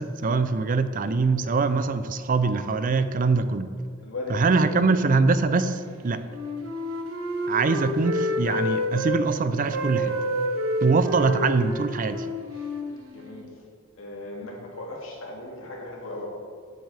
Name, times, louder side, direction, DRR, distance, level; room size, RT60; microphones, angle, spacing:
voice 1, 0.0-3.7 4.3-6.2 7.5-10.2 10.8-12.3, right 4 dB, 40° right, 11 dB, 0.5 m, -23 dB
voice 2, 4.0-4.7 12.5-12.7 13.1-13.5 14.0-16.3, left 2 dB, 85° left, -1 dB, 2.1 m, -37 dB
Wind instrument woodwind instrument, 6.2-9.2 9.7-13.5, equal, 85° right, 1.4 m, -29 dB
13.0 x 8.0 x 3.4 m, 2.2 s
head